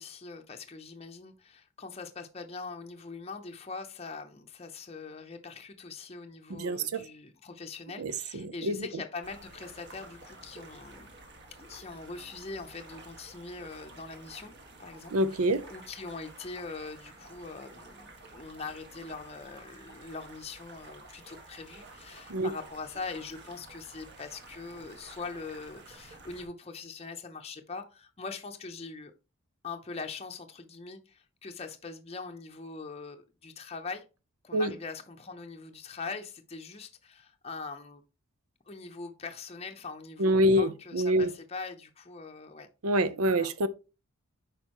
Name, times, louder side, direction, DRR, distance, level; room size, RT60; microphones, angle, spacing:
voice 1, 0.0-11.1 11.7-14.5 14.8-29.1 29.6-34.1 34.4-38.0 38.7-42.7 43.3-43.5, left 4 dB, 30° left, 0.6 m, -42 dB
voice 2, 6.5-7.0 8.0-8.9 15.1-15.7 22.3-22.5 34.5-34.7 40.2-41.3 42.8-43.7, right 1 dB, 80° right, 0.7 m, -26 dB
sound 1, 9.2-26.4, right 2 dB, 50° right, 1.6 m, -51 dB
8.7 x 5.2 x 2.9 m
head